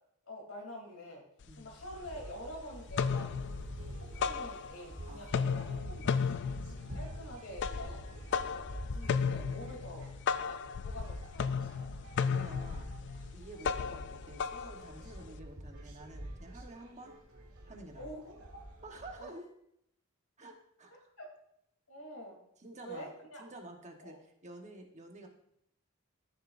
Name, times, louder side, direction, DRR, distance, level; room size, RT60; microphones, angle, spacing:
voice 1, 0.2-1.2 1.6-3.3 3.8-6.2 6.9-8.5 8.9-10.1 10.8-11.6 18.0-18.6 19.2-19.3 21.2-21.3 21.9-22.4 22.8-23.4 24.0-24.2, equal, 85° left, -1 dB, 3.1 m, -46 dB
sound 1, 1.4-1.5 1.8-2.5 2.8-5.0 5.2-15.4, left 6 dB, 55° left, 0.4 m, -35 dB
sound 2, 1.9-19.2, right 1 dB, 80° right, 1.5 m, -48 dB
voice 2, 12.3-17.1 17.7-18.1 18.8-19.5 20.4-21.1 22.6-23.1 23.4-25.3, right 2 dB, 35° right, 2 dB, 1.2 m, -50 dB
14.0 x 6.6 x 2.6 m, 0.73 s
head